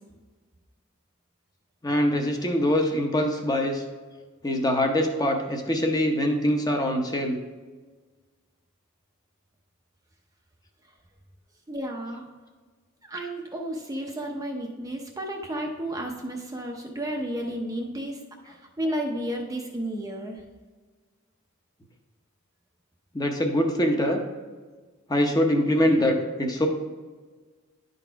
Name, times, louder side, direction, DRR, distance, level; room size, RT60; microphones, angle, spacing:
voice 1, 1.8-3.8 4.4-7.4 23.1-24.2 25.1-26.7, equal, 15° left, 3 dB, 0.7 m, -23 dB
voice 2, 11.7-12.3 13.0-20.4, right 1 dB, 15° right, 1 dB, 0.6 m, -32 dB
10.5 x 4.1 x 4.6 m, 1.4 s
head